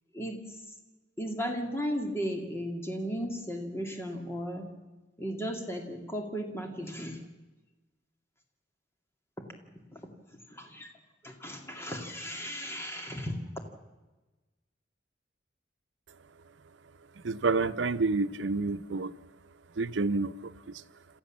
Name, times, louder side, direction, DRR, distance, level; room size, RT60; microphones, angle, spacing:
voice 1, 1.2-4.7 5.2-7.2 9.4-9.5 9.9-10.0 10.5-10.9 11.2-13.4, equal, 15° left, 3 dB, 2.3 m, -35 dB
voice 2, 17.2-19.1 19.7-20.8, right 3 dB, 85° right, 12 dB, 0.7 m, -29 dB
28.0 x 14.0 x 7.4 m, 1.2 s
head